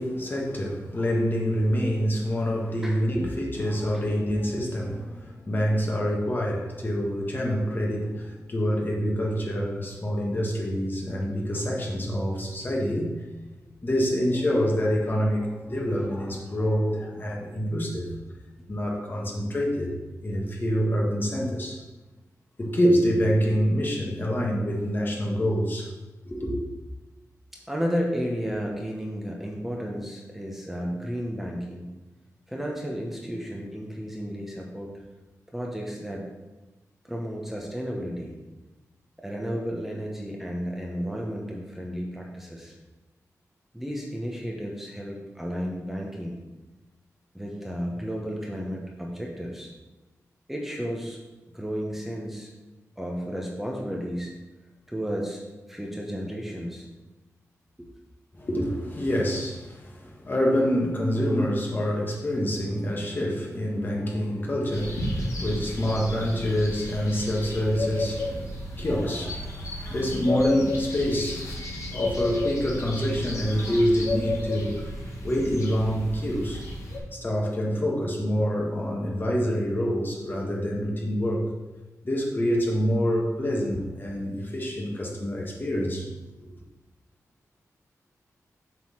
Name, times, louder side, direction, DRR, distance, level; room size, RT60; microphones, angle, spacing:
voice 1, 0.0-13.2 13.8-18.1 18.7-19.9 20.2-21.8 22.6-25.9 26.2-26.6 58.3-69.5 69.9-71.6 71.9-74.9 75.2-76.6 77.1-81.5 82.0-86.1, equal, 35° left, -1 dB, 1.6 m, -26 dB
voice 2, 2.8-3.3 27.7-31.9 32.5-34.9 35.5-36.2 37.0-38.4 39.2-42.7 43.7-46.4 47.3-49.7 50.5-51.2 51.5-52.5 53.0-54.3 54.9-55.4 55.7-56.9 57.8-57.9, equal, 5° right, -1 dB, 1.1 m, -32 dB
sound 1, 64.7-77.0, left 1 dB, 65° left, 2.6 m, -32 dB
7.5 x 4.0 x 6.3 m, 1.1 s
wide cardioid pair, 95°, 6 cm